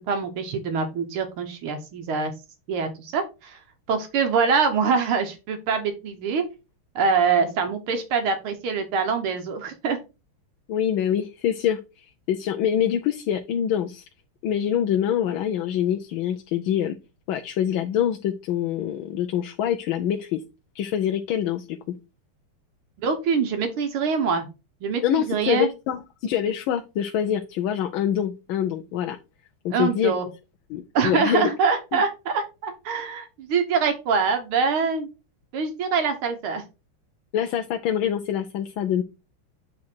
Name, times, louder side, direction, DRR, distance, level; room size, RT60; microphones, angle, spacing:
voice 1, 0.1-2.3 2.7-3.6 3.9-6.4 7.0-10.0 23.0-24.5 24.8-25.7 29.7-30.3 30.9-35.1 35.5-36.6, right 5 dB, 85° right, 7 dB, 1.9 m, -24 dB
voice 2, 10.7-14.0 14.4-17.0 17.3-20.4 20.7-22.0 25.0-29.2 29.6-30.1 30.7-31.5 31.9-32.0 37.3-39.0, left 10 dB, 75° left, 5 dB, 1.3 m, -25 dB
8.4 x 3.8 x 4.4 m, 0.29 s
omnidirectional pair, 2.3 m